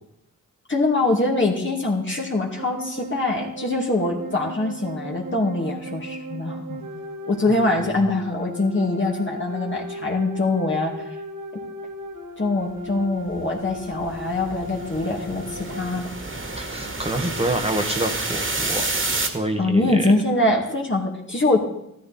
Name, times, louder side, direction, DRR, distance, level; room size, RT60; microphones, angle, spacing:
voice 1, 0.7-6.8 7.3-11.0 12.4-16.0 19.6-21.6, left 2 dB, 35° left, -1 dB, 2.4 m, -23 dB
sound 1, 2.6-16.0, left 1 dB, 65° right, 2.1 m, -36 dB
voice 2, 7.5-8.0 16.5-18.9 19.2-20.1, right 1 dB, 15° right, 4 dB, 1.5 m, -27 dB
sound 2, 13.3-19.3, right 2 dB, 35° right, 2.2 m, -29 dB
14.5 x 13.5 x 4.3 m, 0.82 s
cardioid pair, 75°, 34 cm